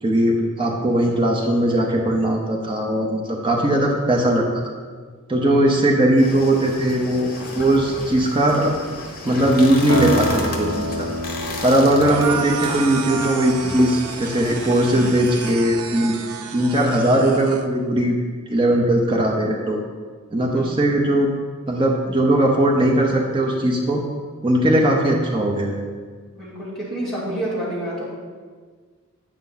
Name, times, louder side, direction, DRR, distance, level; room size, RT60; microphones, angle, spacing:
voice 1, 0.0-4.4 5.3-7.3 7.5-8.7 9.2-11.1 11.6-16.2 16.5-18.1 18.5-19.8 20.3-21.3 21.7-24.0 24.4-25.8, right 1 dB, 20° right, -1 dB, 0.8 m, -19 dB
voice 2, 5.4-5.8 20.5-20.7 26.3-28.0, right 1 dB, ahead, -10 dB, 2.5 m, -29 dB
sound 1, 6.2-15.6, left 2 dB, 40° left, 1.1 m, -33 dB
sound 2, 9.9-14.2, left 1 dB, 55° right, 1.0 m, -28 dB
sound 3, 12.0-17.6, right 6 dB, 90° right, 0.5 m, -31 dB
8.6 x 5.6 x 4.0 m, 1.6 s
head